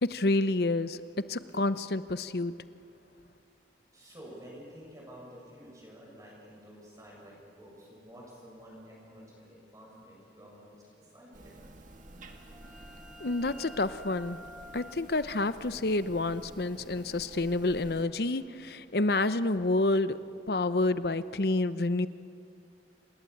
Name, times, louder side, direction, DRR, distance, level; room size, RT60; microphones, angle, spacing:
voice 1, 0.0-2.5 13.2-14.4 14.7-20.2 20.5-22.1, left 2 dB, 60° left, 0.8 m, -29 dB
voice 2, 3.9-11.7, equal, 20° right, 7.3 m, -50 dB
sound 1, 11.3-18.0, right 1 dB, 45° right, 2.0 m, -51 dB
sound 2, 12.0-17.4, left 1 dB, 5° right, 1.9 m, -52 dB
27.5 x 20.5 x 8.5 m
head